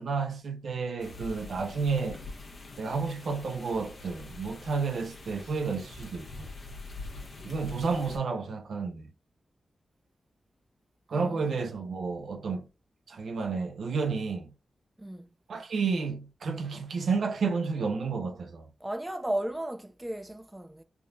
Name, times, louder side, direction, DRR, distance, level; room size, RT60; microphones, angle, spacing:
voice 1, 0.0-2.2 2.8-6.5 7.4-9.1 11.1-12.7 13.1-14.5 15.5-18.6, right 4 dB, 80° right, 0.6 m, -31 dB
sound 1, 1.0-8.2, left 3 dB, 65° left, 0.9 m, -44 dB
voice 2, 11.1-11.6 15.0-15.3 18.8-20.8, right 1 dB, 15° right, 0.5 m, -35 dB
3.5 x 2.4 x 2.6 m
cardioid pair, 70°, 0 cm